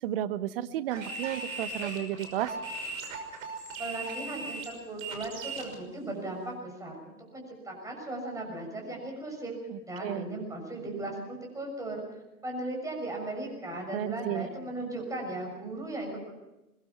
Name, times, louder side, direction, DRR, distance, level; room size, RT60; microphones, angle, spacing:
voice 1, 0.0-2.5 9.7-10.3 13.9-14.5, right 12 dB, 40° right, 14 dB, 1.1 m, -33 dB
sound 1, 0.9-5.7, right 3 dB, 60° right, 5.9 m, -38 dB
voice 2, 3.8-9.5 9.9-12.0 12.4-16.3, right 2 dB, 5° right, 1 dB, 6.5 m, -37 dB
22.5 x 21.0 x 5.9 m, 0.98 s
figure-of-eight pair, 120°, 45 cm